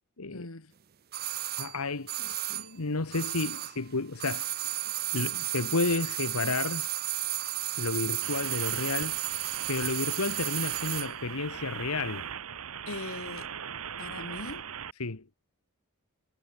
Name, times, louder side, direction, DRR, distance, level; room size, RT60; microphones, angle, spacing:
voice 1, 0.3-0.7 12.9-13.5 14.0-14.7, left 2 dB, 70° left, 2.2 m, -40 dB
sound 1, 1.1-3.9 4.1-11.2 11.4-11.5, right 15 dB, 45° right, 0.8 m, -33 dB
voice 2, 1.6-4.5 5.1-6.9 7.8-9.2 9.7-12.2 15.0-15.2, left 3 dB, 90° left, 1.4 m, -31 dB
sound 2, 8.2-14.9, right 8 dB, 80° right, 1.2 m, -40 dB
head